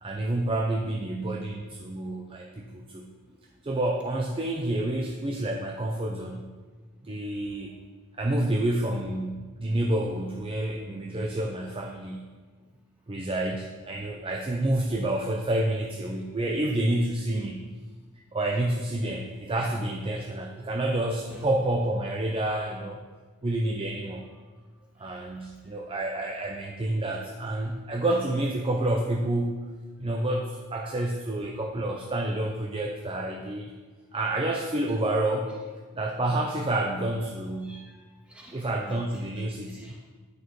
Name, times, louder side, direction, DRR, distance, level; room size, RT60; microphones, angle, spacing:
voice 1, 0.0-3.1 3.6-6.5 7.0-7.8 8.2-12.2 13.1-17.7 18.3-23.0 23.4-24.2 25.0-29.7 30.0-33.7 34.1-35.5 35.9-37.8 38.5-39.9, right 1 dB, 25° right, 1 dB, 0.6 m, -29 dB
voice 2, 37.6-40.1, equal, 5° right, -3 dB, 1.8 m, -52 dB
9.1 x 6.6 x 4.6 m, 1.4 s
head